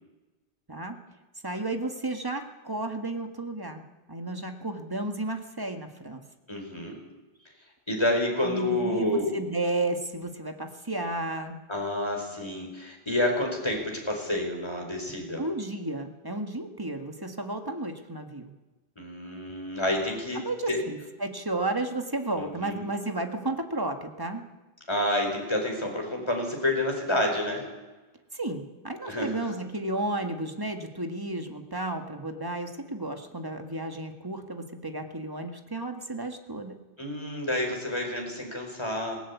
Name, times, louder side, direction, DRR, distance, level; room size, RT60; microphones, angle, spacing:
voice 1, 0.7-1.0 1.4-3.8 4.1-6.2 8.4-11.6 15.4-18.5 20.3-24.5 28.3-36.8, right 2 dB, 20° right, 5 dB, 1.8 m, -33 dB
voice 2, 6.5-7.0 7.9-9.3 11.7-15.4 19.0-20.4 20.7-20.8 22.3-22.8 24.9-27.6 29.1-29.4 37.0-39.2, left 1 dB, 25° left, 2 dB, 4.9 m, -29 dB
18.5 x 17.5 x 8.4 m, 1.2 s
omnidirectional pair, 1.1 m